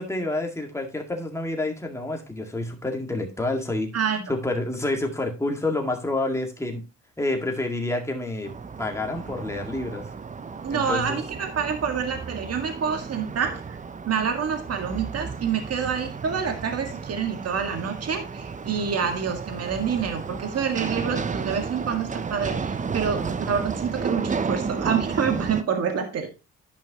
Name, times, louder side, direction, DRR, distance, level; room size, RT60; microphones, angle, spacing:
voice 1, 0.0-3.9 4.3-6.8 7.2-8.5 8.8-10.1 10.7-11.2, left 2 dB, 10° left, 2 dB, 1.9 m, -28 dB
voice 2, 3.9-4.3 10.6-13.8 14.1-26.3, right 6 dB, 55° right, 5 dB, 1.8 m, -27 dB
sound 1, 8.4-25.6, right 5 dB, 25° right, 0.6 m, -33 dB
10.5 x 5.4 x 2.9 m, 0.30 s
cardioid pair, 90°, 30 cm